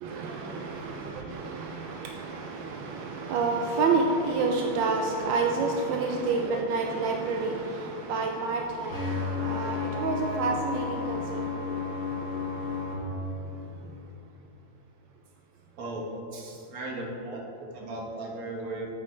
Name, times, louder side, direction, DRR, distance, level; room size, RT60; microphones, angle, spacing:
voice 1, 0.0-12.2 12.6-12.7, right 4 dB, 80° right, 2 dB, 1.3 m, -29 dB
sound 1, 8.6-11.0, equal, 30° right, 1.5 m, -42 dB
sound 2, 8.9-12.9, left 5 dB, 55° left, 2.4 m, -32 dB
voice 2, 15.8-16.1 16.7-17.4 17.7-18.9, right 2 dB, 50° right, -2 dB, 1.6 m, -36 dB
8.4 x 8.4 x 3.3 m, 2.7 s
omnidirectional pair, 2.1 m